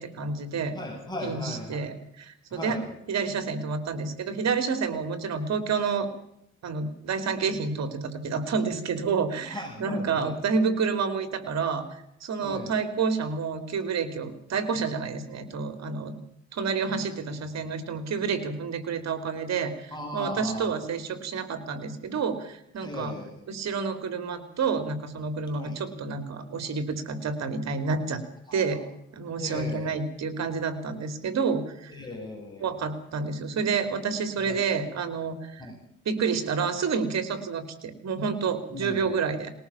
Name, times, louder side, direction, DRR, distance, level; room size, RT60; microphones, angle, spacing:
voice 1, 0.0-0.8 1.2-2.8 3.1-6.1 6.6-16.2 16.5-23.1 23.5-28.2 28.5-28.8 29.1-31.9 32.6-35.6 36.0-39.5, right 5 dB, 60° right, 10 dB, 3.3 m, -29 dB
voice 2, 0.7-1.9 2.5-2.9 9.5-10.3 12.4-12.8 19.9-20.7 22.8-23.4 25.5-25.9 28.5-28.6 29.4-30.0 31.9-32.7 34.4-34.6 35.6-35.8 38.7-39.1, left 1 dB, 15° left, 0 dB, 7.9 m, -38 dB
20.5 x 18.5 x 7.2 m, 0.77 s
cardioid pair, 90°, 30 cm